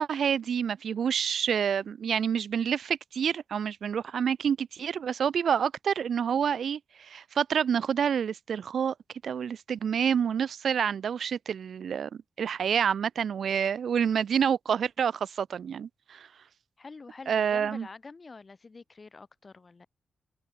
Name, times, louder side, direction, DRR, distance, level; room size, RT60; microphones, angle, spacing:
voice 1, 0.0-8.9 9.2-12.1 12.4-16.3 17.3-17.9, right 7 dB, 75° right, 0.8 m, -28 dB
voice 2, 16.8-19.9, left 4 dB, 35° left, 4.5 m, -46 dB
wide cardioid pair, 125°, 0 cm